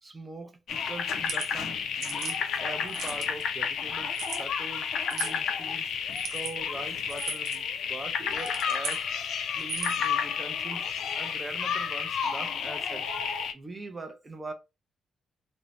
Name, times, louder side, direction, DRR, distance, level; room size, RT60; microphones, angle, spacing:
voice 1, 0.0-10.9 11.1-13.1 13.5-14.5, right 2 dB, 15° right, 0.4 m, -42 dB
sound 1, 0.7-13.5, left 7 dB, 70° left, 0.3 m, -31 dB
sound 2, 1.1-1.5 2.0-2.4 2.9-3.4 4.1-4.4 5.1-5.4 6.1-6.5 7.1-7.6 8.3-9.0 9.6-10.1, right 5 dB, 85° right, 0.5 m, -36 dB
2.5 x 2.0 x 3.0 m
wide cardioid pair, 180°, 0 cm